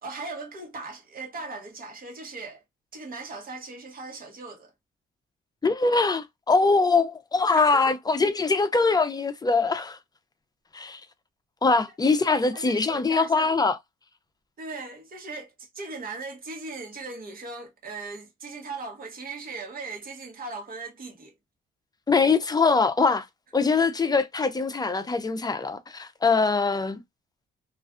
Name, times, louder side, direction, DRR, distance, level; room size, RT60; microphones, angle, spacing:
voice 1, 0.0-2.6 2.9-4.7 7.5-7.8 12.5-13.5 14.6-21.3, right 3 dB, 45° right, 1.1 m, -38 dB
voice 2, 5.6-10.0 10.7-11.0 11.6-13.8 22.1-23.3 23.5-27.0, left 4 dB, 20° left, 0.4 m, -23 dB
2.4 x 2.2 x 2.4 m
cardioid pair, 90°, 20 cm